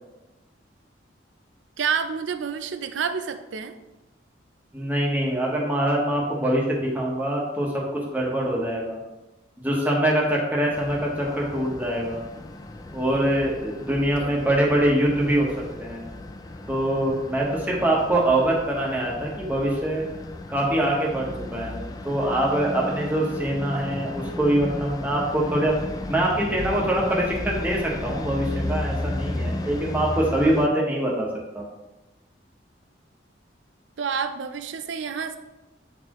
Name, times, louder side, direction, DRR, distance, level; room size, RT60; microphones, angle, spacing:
voice 1, 1.8-3.8 14.2-14.3 34.0-35.4, right 6 dB, 85° right, 9 dB, 0.5 m, -28 dB
voice 2, 4.7-9.0 9.6-12.2 12.9-15.5 15.8-16.1 16.7-20.0 20.5-25.8 26.1-31.3 31.5-31.6, right 1 dB, 10° right, -3 dB, 1.2 m, -24 dB
sound 1, 10.7-30.7, left 1 dB, 20° left, 0.3 m, -34 dB
8.7 x 4.2 x 3.1 m, 1.0 s
head